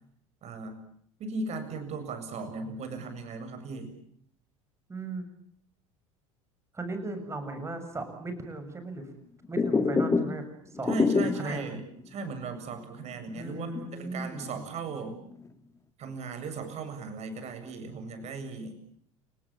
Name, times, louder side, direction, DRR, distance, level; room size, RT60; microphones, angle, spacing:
voice 1, 0.4-0.8 1.2-3.9 10.9-11.8 12.1-13.7 13.9-15.2 16.0-18.7, right 3 dB, 40° right, 8 dB, 7.7 m, -37 dB
voice 2, 4.9-5.2 6.7-9.1 9.5-10.4 10.7-10.9 11.3-11.7 13.4-14.6, right 2 dB, 15° right, 8 dB, 7.2 m, -37 dB
sound 1, 9.4-10.5 10.7-11.6 12.0-12.1 12.5-12.6 13.1-14.5 14.8-15.5, left 4 dB, 20° left, 2.3 m, -27 dB
29.5 x 19.0 x 9.0 m, 0.66 s
figure-of-eight pair, 75°, 17 cm